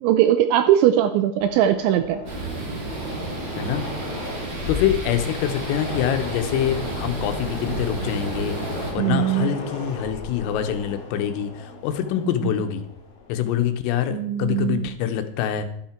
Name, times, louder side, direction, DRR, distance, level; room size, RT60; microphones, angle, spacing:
voice 1, 0.0-2.2 9.0-9.6 12.1-12.2 14.1-14.9, right 11 dB, 80° right, 9 dB, 2.7 m, -20 dB
Train, 1.4-13.7, left 4 dB, 70° left, 4.6 m, -36 dB
sound 1, 2.2-8.9, right 2 dB, 35° right, 2.0 m, -32 dB
voice 2, 4.7-8.6 8.9-12.8 13.3-15.7, left 10 dB, 90° left, 8 dB, 3.6 m, -25 dB
12.0 x 11.5 x 4.5 m, 0.71 s
omnidirectional pair, 5.9 m